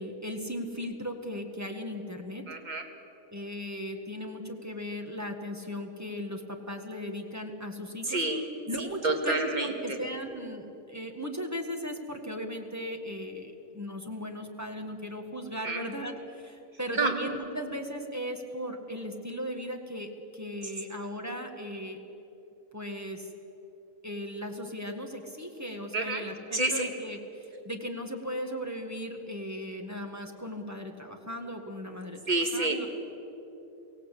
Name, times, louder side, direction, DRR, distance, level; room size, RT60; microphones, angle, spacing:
voice 1, 0.0-2.4 3.3-8.2 8.7-22.0 22.7-23.3 24.0-32.9, equal, 10° right, 3 dB, 1.7 m, -37 dB
voice 2, 2.5-2.8 8.0-8.5 9.0-9.7 15.6-15.8 16.9-17.1 25.9-26.2 26.5-26.9 32.3-32.9, right 2 dB, 30° right, 3 dB, 2.1 m, -28 dB
23.5 x 16.5 x 8.4 m, 3.0 s
omnidirectional pair, 1.5 m